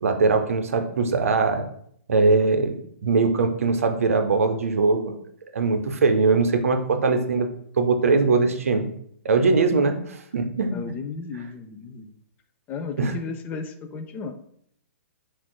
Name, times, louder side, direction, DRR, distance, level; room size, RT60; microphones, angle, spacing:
voice 1, 0.0-1.6 2.1-5.1 5.5-7.5 7.8-8.9 9.2-10.0 10.3-10.7 13.0-13.1, right 4 dB, 75° right, 6 dB, 0.5 m, -21 dB
voice 2, 10.7-12.1 12.7-14.3, left 5 dB, 20° left, 7 dB, 0.3 m, -34 dB
5.9 x 2.4 x 2.2 m, 0.67 s
hypercardioid pair, 130°, 8 cm